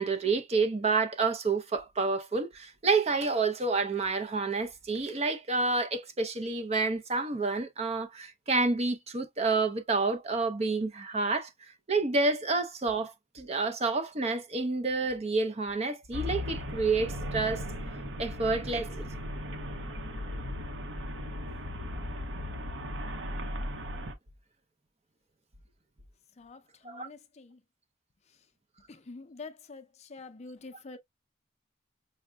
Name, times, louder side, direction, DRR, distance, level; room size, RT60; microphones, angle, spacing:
voice 1, 0.0-11.5 11.9-17.6 18.2-19.1 26.8-27.1, right 3 dB, 35° right, 0.6 m, -29 dB
Traffic noise roadway noise, 16.1-24.1, left 1 dB, 65° right, 0.8 m, -37 dB
voice 2, 26.4-27.6 28.9-31.0, left 3 dB, 35° left, 0.5 m, -46 dB
6.1 x 2.1 x 2.2 m
head